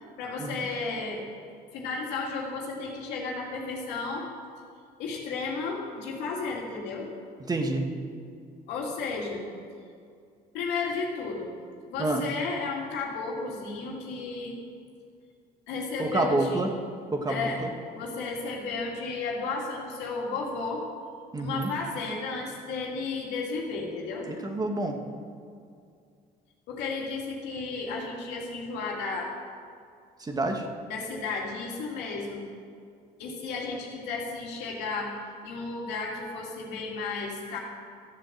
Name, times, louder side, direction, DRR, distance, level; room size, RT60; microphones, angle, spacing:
voice 1, 0.2-1.2 1.7-4.3 5.0-7.1 8.7-9.4 10.5-11.5 11.9-14.6 15.7-16.6 17.3-17.6 17.9-20.8 21.4-24.3 26.7-29.3 30.9-32.4 33.2-35.1 35.4-37.6, left 4 dB, 90° left, -2 dB, 2.7 m, -33 dB
voice 2, 7.4-7.9 12.0-12.2 16.0-16.7 17.1-17.7 21.3-21.7 24.3-25.0 30.2-30.7, right 2 dB, 20° right, 3 dB, 1.5 m, -28 dB
13.5 x 7.7 x 7.7 m, 2.3 s
cardioid pair, 110°, 17 cm